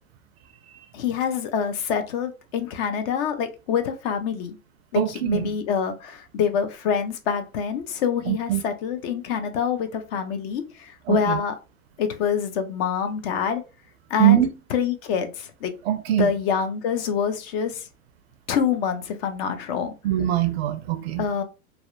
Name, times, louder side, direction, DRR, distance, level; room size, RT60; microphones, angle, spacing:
voice 1, 0.9-4.6 4.9-11.5 12.0-13.6 14.1-14.4 14.7-15.7 16.2-17.9 18.5-19.9 21.2-21.4, left 7 dB, 40° left, 0.5 m, -26 dB
voice 2, 4.9-5.5 8.3-8.6 11.1-11.4 14.2-14.5 15.9-16.3 20.0-21.3, right 13 dB, 45° right, 0.4 m, -22 dB
2.7 x 2.0 x 2.5 m
hypercardioid pair, 105°, 44 cm